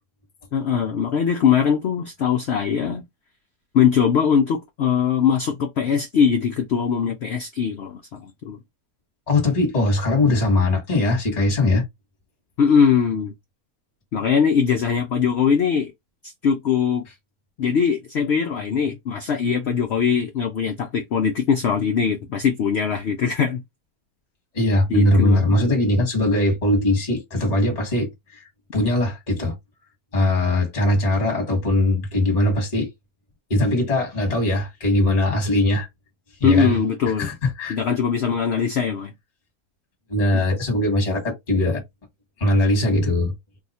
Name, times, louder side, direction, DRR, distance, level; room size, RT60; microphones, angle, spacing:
voice 1, 0.5-3.0 3.7-8.6 12.6-13.3 14.1-15.9 16.4-17.1 17.6-23.6 24.9-25.4 36.4-37.3 37.7-39.1 40.3-40.4, left 7 dB, 80° left, 0.5 m, -21 dB
voice 2, 9.3-11.8 24.5-28.4 28.7-29.5 30.1-32.9 33.5-35.9 36.4-36.8 37.2-37.8 40.1-41.8 42.4-43.3, left 1 dB, 25° left, 1.1 m, -20 dB
2.8 x 2.3 x 4.1 m
omnidirectional pair, 1.8 m